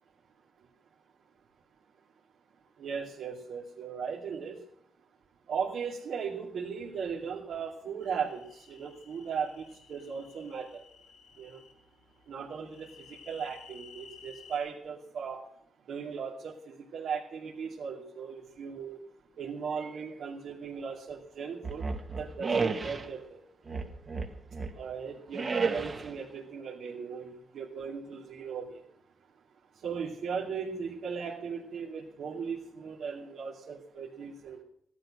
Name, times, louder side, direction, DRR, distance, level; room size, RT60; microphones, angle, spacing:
voice 1, 2.8-4.5 5.5-9.6 9.9-10.8 11.4-11.6 12.3-12.9 13.3-15.4 15.9-19.0 19.4-21.8 22.2-23.4 24.8-28.8 29.8-34.6, right 6 dB, 70° right, -3 dB, 2.7 m, -37 dB
sound 1, 8.0-11.7 12.7-14.6, left 6 dB, 90° left, 7.4 m, -54 dB
sound 2, 21.6-23.1 23.7-24.8 25.3-26.2, right 4 dB, 35° right, 1.8 m, -32 dB
15.0 x 11.5 x 6.3 m, 0.70 s
cardioid pair, 95°, 0 cm